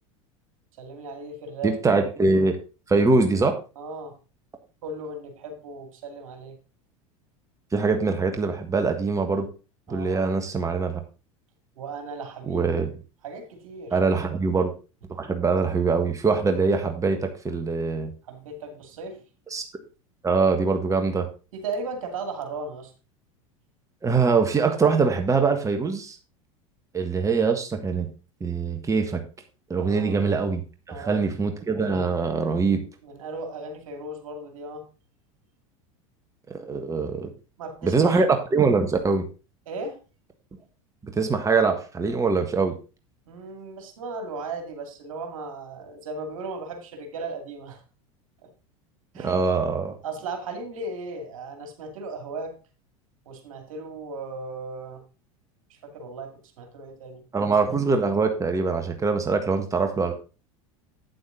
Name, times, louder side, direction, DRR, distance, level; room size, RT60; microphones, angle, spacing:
voice 1, 0.8-2.0 3.8-4.2 4.8-6.6 9.9-10.3 11.8-12.6 13.2-14.0 18.3-19.2 21.5-22.9 29.7-30.2 30.9-31.4 33.0-34.9 37.6-38.3 39.7-40.0 43.3-47.8 48.4-48.5 49.1-49.3 50.0-52.5 53.3-55.0 55.7-57.2, right 3 dB, 75° right, 6 dB, 2.3 m, -36 dB
voice 2, 1.6-2.6 2.9-3.5 7.7-9.5 9.9-11.0 12.5-12.9 13.9-14.7 15.1-18.1 19.5-19.6 20.2-21.2 24.0-26.2 26.9-28.1 28.4-29.2 29.7-30.6 31.1-32.8 36.5-37.3 37.8-38.3 38.5-39.2 41.0-42.7 49.2-49.9 57.3-60.1, right 4 dB, 20° right, 5 dB, 1.5 m, -23 dB
8.7 x 7.9 x 3.8 m, 0.33 s
hypercardioid pair, 90°, 17 cm